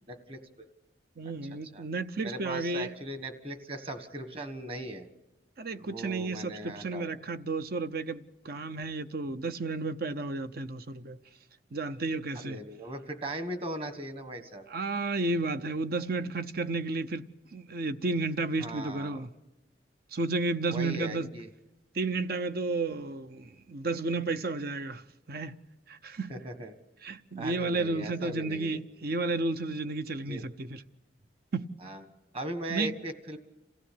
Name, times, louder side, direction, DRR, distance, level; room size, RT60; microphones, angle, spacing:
voice 1, 0.1-0.4 1.7-1.8 2.2-5.1 5.8-7.1 12.3-14.6 18.6-19.2 20.7-21.5 26.3-26.8 27.4-28.8 30.3-30.4 31.8-32.0 32.3-33.4, right 1 dB, 30° right, 1.5 m, -38 dB
voice 2, 1.2-2.9 5.6-11.2 11.7-12.6 14.7-17.3 17.5-19.3 20.1-21.3 21.9-25.0 25.3-25.6 25.9-26.4 27.0-30.8 31.5-31.7 32.7-32.9, right 3 dB, 55° right, 0.7 m, -32 dB
27.5 x 15.5 x 8.5 m
head